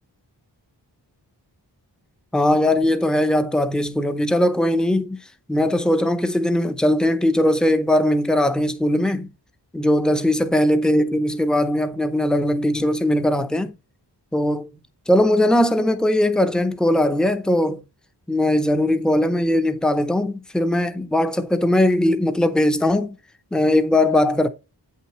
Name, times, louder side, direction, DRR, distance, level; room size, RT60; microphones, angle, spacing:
voice 1, 2.3-5.2 5.5-9.3 9.7-13.8 14.3-14.7 15.1-17.8 18.3-23.2 23.5-24.5, left 1 dB, ahead, 0.6 m, -20 dB
8.1 x 5.7 x 3.1 m
wide cardioid pair, 65°, 43 cm